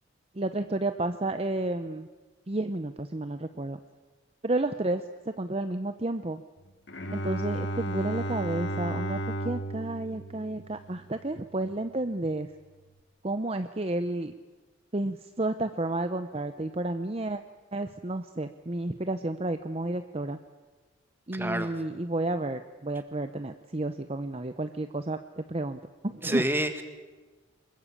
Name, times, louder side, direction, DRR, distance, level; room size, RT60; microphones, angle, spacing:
voice 1, 0.3-2.1 2.5-3.8 4.4-5.0 5.4-6.4 7.1-9.2 9.4-12.5 13.2-14.3 14.9-17.4 17.7-20.4 21.3-26.4, right 2 dB, 30° right, 9 dB, 0.7 m, -31 dB
Bowed string instrument, 6.9-11.4, right 1 dB, 60° left, 2.4 m, -34 dB
voice 2, 21.3-21.7 26.2-26.8, right 1 dB, 10° right, 8 dB, 1.8 m, -28 dB
25.0 x 21.5 x 8.5 m, 1.3 s
head